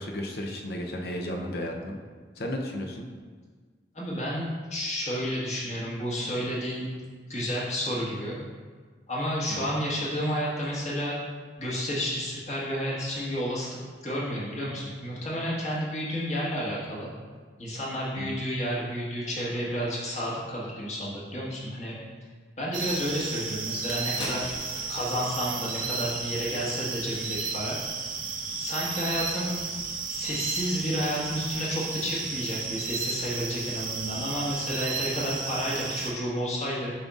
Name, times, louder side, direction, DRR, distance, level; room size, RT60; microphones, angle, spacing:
voice 1, 0.0-2.0 2.4-3.1 9.5-9.7 18.2-18.4, left 1 dB, 60° left, 1 dB, 0.6 m, -34 dB
voice 2, 3.9-6.9 7.3-8.4 9.1-11.2 11.6-17.1 17.6-21.9 22.6-24.5 24.9-27.8 28.6-29.5 30.1-36.9, equal, 40° left, -6 dB, 1.5 m, -31 dB
sound 1, 22.7-36.1, right 4 dB, 45° right, 0.6 m, -33 dB
sound 2, 23.6-26.9 27.2-27.4, left 1 dB, 90° left, 1.4 m, -42 dB
7.2 x 5.3 x 2.4 m, 1.5 s
head